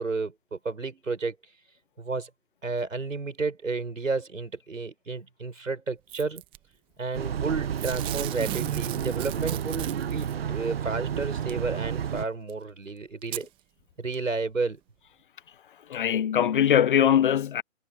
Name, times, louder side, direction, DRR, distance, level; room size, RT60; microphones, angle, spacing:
voice 1, 0.0-1.3 2.0-2.3 2.6-6.4 7.0-13.5 14.0-14.8, right 3 dB, 85° right, 7.5 m, -32 dB
Packing tape duct tape / Tearing, 6.1-6.6 7.8-10.3 11.5-11.6 12.5-12.6 13.2-13.5 14.1-14.2, right 17 dB, 15° right, 1.4 m, -36 dB
sound 1, 7.1-12.3, right 8 dB, 50° right, 0.9 m, -31 dB
voice 2, 15.8-17.6, left 9 dB, 40° left, 1.4 m, -22 dB
figure-of-eight pair, 150°, 39 cm